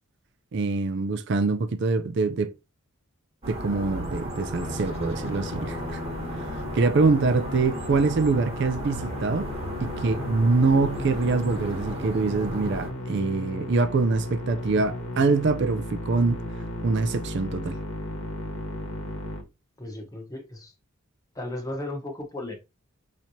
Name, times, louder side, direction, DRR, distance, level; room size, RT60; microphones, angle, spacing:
voice 1, 0.5-2.5 3.5-6.0 6.7-9.5 9.8-16.4 16.8-17.8, right 3 dB, 55° right, 0.4 m, -24 dB
sound 1, 3.4-12.9, equal, 30° right, 1.2 m, -35 dB
Musical instrument, 4.6-19.4, left 1 dB, 70° left, 1.3 m, -36 dB
voice 2, 19.8-20.7 21.3-22.6, left 1 dB, 15° left, 1.0 m, -35 dB
5.7 x 3.0 x 2.7 m
head